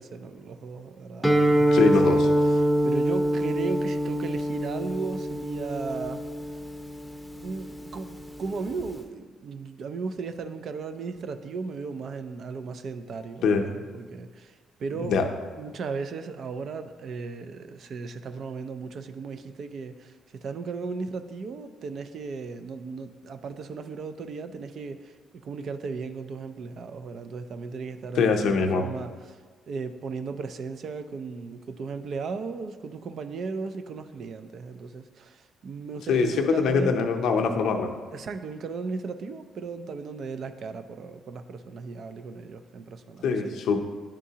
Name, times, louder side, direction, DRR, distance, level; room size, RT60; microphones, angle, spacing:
voice 1, 0.0-6.2 6.5-6.6 7.4-15.2 15.6-25.2 25.4-29.4 29.7-37.0 38.1-43.6, right 4 dB, 60° right, 9 dB, 0.4 m, -36 dB
Guitar, 1.2-9.0, equal, ahead, 0.6 m, -25 dB
voice 2, 1.7-2.3 13.4-13.7 14.9-15.2 28.1-28.8 36.1-37.9 43.2-43.8, left 5 dB, 75° left, 4 dB, 0.6 m, -23 dB
9.9 x 3.7 x 2.8 m, 1.5 s
cardioid pair, 90°, 0 cm